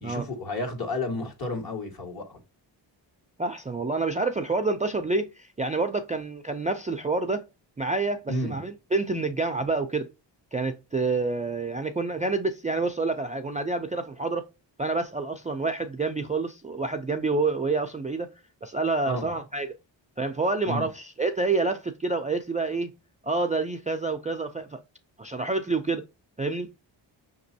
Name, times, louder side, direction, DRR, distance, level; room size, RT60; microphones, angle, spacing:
voice 1, 0.0-2.3 8.3-8.6 19.1-19.3 20.6-20.9, left 1 dB, 50° left, 1.8 m, -31 dB
voice 2, 3.4-7.5 7.8-10.1 10.5-14.4 14.8-18.3 18.6-19.7 20.2-22.9 23.2-24.8 25.2-26.0 26.4-26.7, right 3 dB, 20° right, 0.3 m, -28 dB
5.9 x 3.0 x 2.7 m
wide cardioid pair, 120°, 45 cm